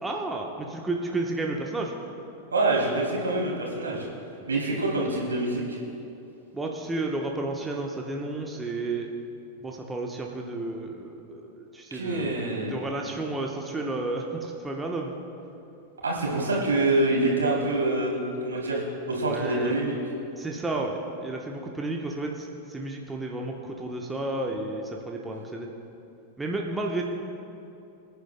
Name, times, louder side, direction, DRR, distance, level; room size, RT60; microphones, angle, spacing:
voice 1, 0.0-1.9 4.7-4.8 6.5-9.1 9.6-15.2 19.3-19.8 20.4-25.7 26.4-27.0, right 2 dB, 10° right, 0 dB, 1.0 m, -32 dB
voice 2, 2.5-4.1 4.5-5.8 11.9-12.7 16.0-19.9, right 2 dB, 75° right, -3 dB, 3.0 m, -26 dB
24.0 x 10.5 x 2.2 m, 2.8 s
figure-of-eight pair, 90°, 0 cm